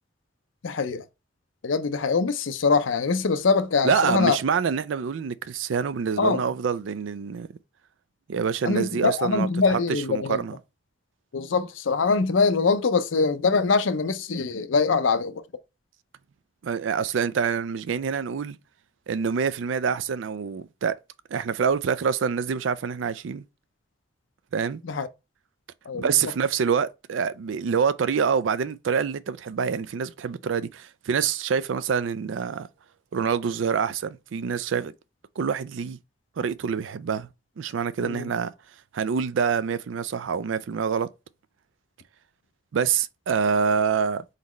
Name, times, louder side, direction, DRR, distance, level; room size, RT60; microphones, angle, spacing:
voice 1, 0.6-1.0 1.6-4.4 6.2-6.4 8.6-10.4 11.3-15.4 24.8-25.1 25.9-26.1 38.0-38.3, left 4 dB, 85° left, 0.6 m, -23 dB
voice 2, 3.8-7.5 8.3-10.6 16.6-18.6 19.1-21.0 21.3-23.4 24.5-24.8 25.9-32.7 33.1-34.9 35.4-36.0 36.4-37.3 37.6-38.5 38.9-41.1 42.7-44.2, right 6 dB, 85° right, 0.4 m, -26 dB
4.1 x 4.0 x 3.1 m
head